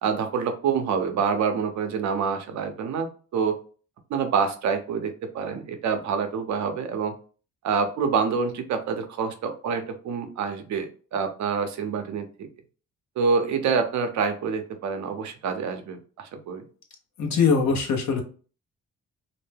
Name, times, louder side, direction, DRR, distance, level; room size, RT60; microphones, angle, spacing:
voice 1, 0.0-3.1 3.3-3.6 4.1-7.1 7.6-12.3 13.2-16.6, right 6 dB, 70° right, 6 dB, 0.7 m, -26 dB
voice 2, 17.2-18.2, left 5 dB, 65° left, 2 dB, 0.9 m, -22 dB
2.6 x 2.1 x 3.3 m, 0.38 s
cardioid pair, 90°, 30 cm